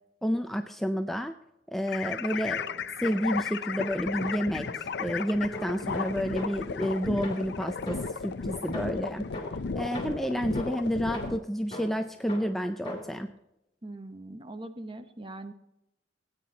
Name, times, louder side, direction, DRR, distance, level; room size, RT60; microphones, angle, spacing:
voice 1, 0.2-1.3 1.7-2.6 3.0-9.2 9.7-13.3, equal, ahead, 6 dB, 0.4 m, -30 dB
sound 1, 1.9-11.4, left 5 dB, 60° left, 0.5 m, -35 dB
sound 2, 2.5-3.4 3.8-8.3 8.7-13.3, left 1 dB, 25° left, 2.9 m, -42 dB
voice 2, 13.8-15.5, right 2 dB, 30° right, 8 dB, 0.9 m, -41 dB
17.5 x 9.2 x 2.8 m, 0.87 s
head